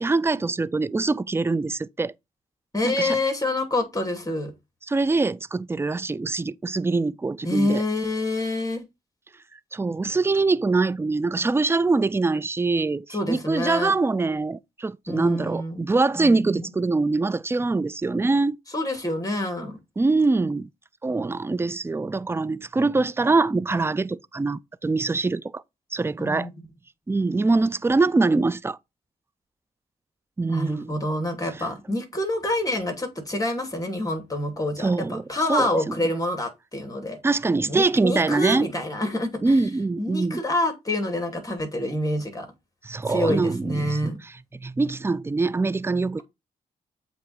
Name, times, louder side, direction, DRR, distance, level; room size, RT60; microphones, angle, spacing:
voice 1, 0.0-2.1 2.8-3.2 4.9-7.8 9.7-18.6 20.0-20.7 21.0-25.6 25.9-26.5 27.1-28.8 30.4-30.9 34.8-35.2 35.5-35.9 37.2-38.7 39.4-40.4 42.8-44.1 44.6-46.2, right 3 dB, 15° right, 0.4 m, -23 dB
voice 2, 2.7-4.5 7.4-8.8 13.1-13.9 15.1-15.8 16.1-16.7 18.7-19.7 26.2-26.7 30.5-37.2 37.7-39.6 40.0-42.5 43.1-44.2, left 1 dB, 20° left, 2.8 m, -27 dB
7.6 x 3.0 x 4.2 m
supercardioid pair, 45°, 16 cm